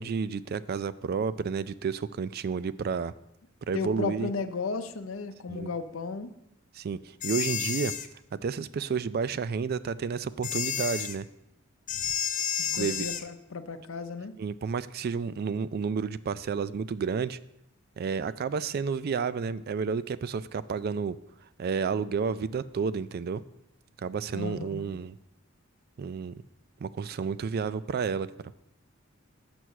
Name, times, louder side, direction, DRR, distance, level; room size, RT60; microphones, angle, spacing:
voice 1, 0.0-3.1 3.7-4.3 5.5-5.7 6.7-7.9 8.3-11.3 12.8-13.1 14.4-17.4 18.0-21.2 21.6-23.4 24.0-25.2 26.0-26.3 26.8-28.5, right 5 dB, 50° right, 16 dB, 0.3 m, -31 dB
voice 2, 3.7-6.3 12.6-14.3 24.3-24.9, left 4 dB, 80° left, 10 dB, 0.7 m, -34 dB
sound 1, 7.2-8.1 10.4-11.2 11.9-13.3, left 9 dB, 40° left, 0.5 m, -31 dB
6.8 x 6.1 x 6.3 m, 0.82 s
head